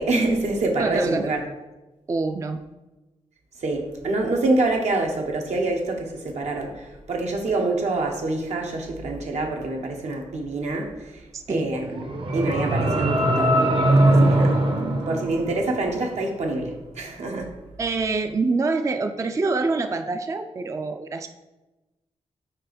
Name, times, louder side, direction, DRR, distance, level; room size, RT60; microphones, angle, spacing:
voice 1, 0.0-1.4 3.6-11.2 11.5-11.9 12.3-13.6 14.1-14.5 15.1-17.5, right 2 dB, 75° right, 1 dB, 1.0 m, -26 dB
voice 2, 0.8-1.3 2.1-2.6 11.3-11.7 17.8-21.3, right 3 dB, 25° right, 7 dB, 0.3 m, -25 dB
sound 1, 11.8-16.0, right 1 dB, 45° right, 0.7 m, -21 dB
4.4 x 4.1 x 5.1 m, 1.1 s
wide cardioid pair, 95°, 12 cm